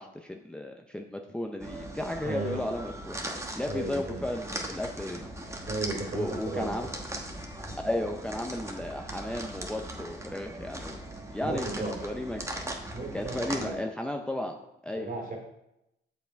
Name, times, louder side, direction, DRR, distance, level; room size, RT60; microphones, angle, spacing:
voice 1, 0.0-3.2 3.5-5.3 6.1-6.9 7.8-11.0 11.3-12.5 13.1-14.6 14.8-15.1, left 1 dB, 5° left, 3 dB, 0.6 m, -34 dB
sound 1, 1.6-13.7, right 1 dB, 15° right, 1.2 m, -39 dB
voice 2, 2.2-2.6 3.6-4.2 5.6-6.9 7.7-7.8 11.4-12.1 12.9-13.8 14.9-15.4, right 2 dB, 45° right, 1 dB, 2.6 m, -35 dB
7.0 x 5.5 x 4.6 m, 0.86 s
cardioid pair, 90°, 20 cm